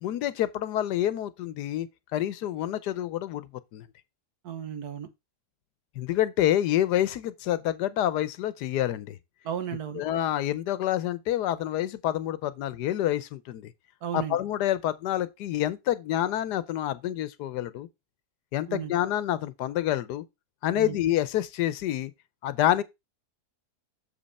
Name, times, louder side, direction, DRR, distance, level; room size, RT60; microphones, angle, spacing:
voice 1, 0.0-3.9 6.0-9.2 9.9-13.7 14.1-17.9 18.5-20.2 20.6-22.1 22.4-22.8, left 12 dB, 85° left, 1.3 m, -28 dB
voice 2, 4.4-5.1 9.4-10.0 14.0-14.4 18.7-18.9 20.7-21.0, right 9 dB, 75° right, 1.6 m, -34 dB
7.1 x 5.3 x 4.1 m
omnidirectional pair, 1.7 m